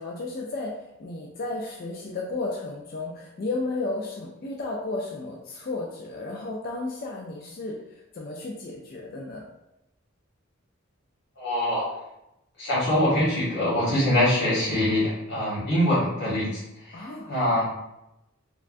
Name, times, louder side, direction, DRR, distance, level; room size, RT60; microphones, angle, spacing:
voice 1, 0.0-7.7 8.1-9.4 16.9-17.5, left 2 dB, 45° left, -1 dB, 0.3 m, -33 dB
voice 2, 11.4-11.8 12.6-17.7, left 1 dB, 70° left, -9 dB, 1.2 m, -24 dB
3.4 x 2.1 x 2.4 m, 0.89 s
head